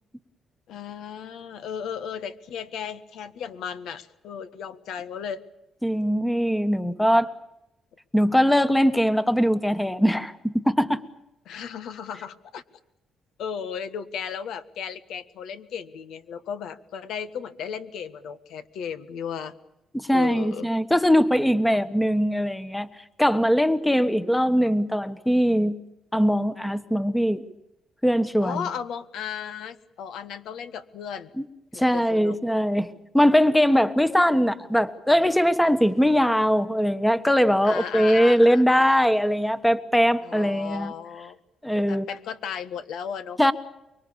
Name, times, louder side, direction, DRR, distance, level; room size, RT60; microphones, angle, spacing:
voice 1, 0.7-5.4 11.4-12.6 13.4-19.5 20.1-20.7 28.4-31.3 31.7-32.4 34.3-34.5 37.6-38.6 40.2-41.4 41.9-43.4, left 7 dB, 80° left, 11 dB, 1.5 m, -35 dB
voice 2, 5.8-7.3 8.1-11.0 19.9-22.9 23.2-25.8 26.1-27.4 28.0-28.6 31.4-31.5 31.7-32.9 33.1-40.9 41.6-42.1 43.4-43.5, equal, 5° left, 10 dB, 1.3 m, -21 dB
24.5 x 23.5 x 7.1 m, 0.90 s
cardioid pair, 90°, 0 cm